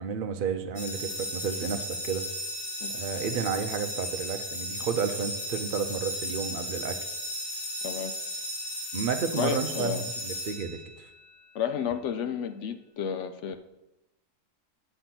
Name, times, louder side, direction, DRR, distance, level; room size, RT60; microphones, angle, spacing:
voice 1, 0.0-2.3 2.9-7.0 8.9-10.8, right 6 dB, 50° right, 7 dB, 0.6 m, -31 dB
sound 1, 0.8-11.2, left 1 dB, 35° left, 1.6 m, -35 dB
voice 2, 9.3-10.1 11.5-13.6, left 8 dB, 65° left, 9 dB, 0.7 m, -31 dB
8.2 x 5.5 x 6.0 m, 0.96 s
omnidirectional pair, 1.7 m